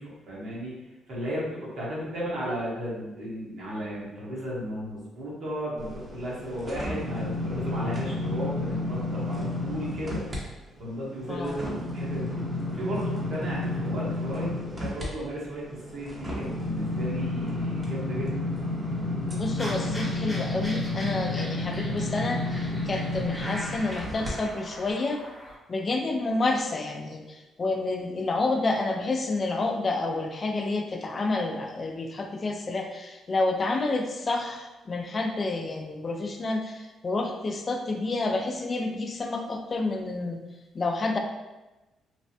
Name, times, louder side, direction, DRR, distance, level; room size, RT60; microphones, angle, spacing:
voice 1, 0.0-10.2 10.8-12.4 12.7-18.5, equal, 65° right, -6 dB, 1.1 m, -35 dB
sound 1, 5.8-10.4 10.8-24.3 24.8-24.9, left 2 dB, 25° right, 0.7 m, -31 dB
voice 2, 11.3-11.6 19.3-25.2 25.7-40.4 40.7-41.2, left 2 dB, 35° left, 4 dB, 0.3 m, -29 dB
sound 2, 19.6-25.5, equal, 10° left, 0.9 m, -40 dB
3.2 x 2.1 x 2.7 m, 1.1 s
cardioid pair, 90°, 0 cm